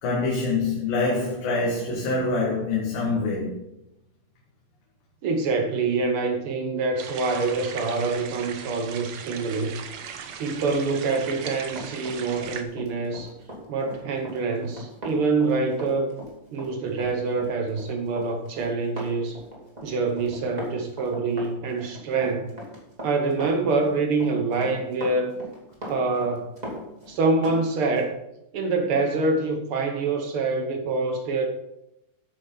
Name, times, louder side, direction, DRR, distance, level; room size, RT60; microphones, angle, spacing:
voice 1, 0.0-3.6, left 3 dB, 75° left, -4 dB, 3.6 m, -25 dB
voice 2, 5.2-9.8 10.4-13.3 13.7-16.1 16.5-19.4 19.8-22.5 23.0-25.3 25.8-26.6 27.1-28.1 28.5-31.5, right 3 dB, 85° right, 3 dB, 1.2 m, -25 dB
sound 1, 7.0-12.6, right 7 dB, 70° right, 1.7 m, -38 dB
Run, 10.6-27.6 28.0-28.1, equal, 15° right, 2.0 m, -40 dB
12.5 x 8.9 x 4.0 m, 0.86 s
omnidirectional pair, 4.2 m